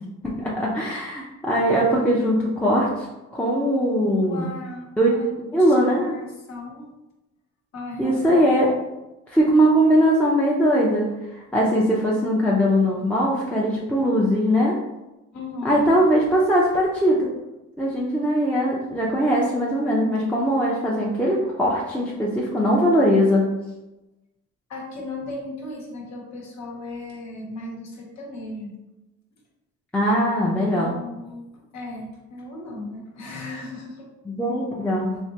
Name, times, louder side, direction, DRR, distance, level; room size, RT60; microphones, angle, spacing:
voice 1, 0.2-3.1 3.3-4.5 5.0-5.1 5.5-6.2 8.0-8.7 9.3-14.7 15.6-17.2 17.8-23.5 29.9-30.9 34.3-35.1, equal, 5° left, -5 dB, 0.5 m, -20 dB
voice 2, 4.1-6.9 7.7-8.5 15.3-15.9 24.7-28.7 30.5-34.1, left 2 dB, 65° left, -1 dB, 1.0 m, -36 dB
3.2 x 2.8 x 2.8 m, 1.0 s
cardioid pair, 90°, 30 cm